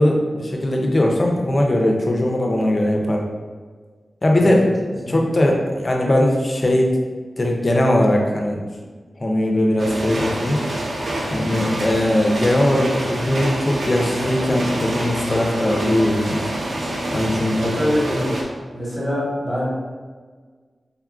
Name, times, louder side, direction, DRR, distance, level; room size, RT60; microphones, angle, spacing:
voice 1, 0.0-3.2 4.2-4.6 5.1-7.0 7.4-8.6 9.2-10.6 11.3-16.4 17.1-17.8, left 1 dB, 35° left, 0 dB, 0.5 m, -19 dB
voice 2, 4.3-4.7 5.0-5.2 17.5-18.3 18.7-19.7, equal, ahead, -8 dB, 1.2 m, -24 dB
sound 1, 9.8-18.4, right 1 dB, 65° right, 0.5 m, -26 dB
3.6 x 2.4 x 2.3 m, 1.5 s
wide cardioid pair, 125°, 0 cm